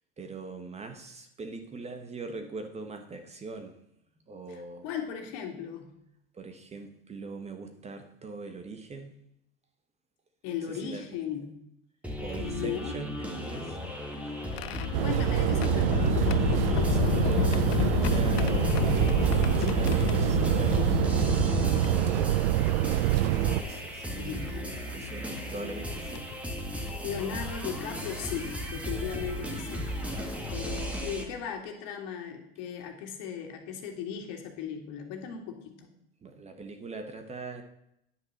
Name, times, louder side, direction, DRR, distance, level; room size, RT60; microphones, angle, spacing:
voice 1, 0.2-3.8 4.3-4.9 6.3-9.2 10.7-11.2 12.2-13.8 14.2-14.5 16.7-21.0 21.4-23.3 23.6-24.5 24.9-26.5 30.0-30.5 33.8-33.9 36.2-37.6, right 3 dB, 20° right, 6 dB, 1.3 m, -42 dB
voice 2, 4.5-5.9 10.4-11.5 12.4-12.9 15.0-16.3 24.2-24.7 27.0-29.9 30.5-35.9, left 8 dB, 55° left, 3 dB, 2.3 m, -37 dB
sound 1, 12.0-31.2, equal, 5° right, 1.8 m, -36 dB
sound 2, 13.4-22.7 23.6-23.7 25.2-25.4 26.1-26.3 27.9-28.0 28.5-28.7, left 15 dB, 75° left, 0.5 m, -30 dB
sound 3, 14.9-23.6, right 17 dB, 65° right, 0.5 m, -26 dB
9.9 x 5.7 x 6.6 m, 0.77 s
hypercardioid pair, 110°, 31 cm